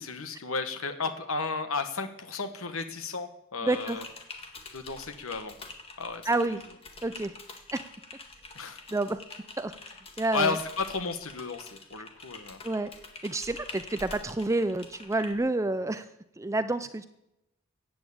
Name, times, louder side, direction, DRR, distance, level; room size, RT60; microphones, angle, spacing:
voice 1, 0.0-4.0 4.7-5.5 6.0-6.2 8.5-8.8 10.3-12.6, left 4 dB, 70° left, 8 dB, 1.2 m, -33 dB
voice 2, 3.6-4.0 6.3-6.6 7.0-7.3 7.7-7.8 8.9-9.2 9.6-9.7 10.2-10.6 12.6-12.9 13.2-16.0 16.4-17.1, right 2 dB, 15° right, 11 dB, 0.5 m, -28 dB
Typing, 3.7-15.3, left 3 dB, 25° left, 1.8 m, -46 dB
15.0 x 9.1 x 8.7 m, 0.85 s
head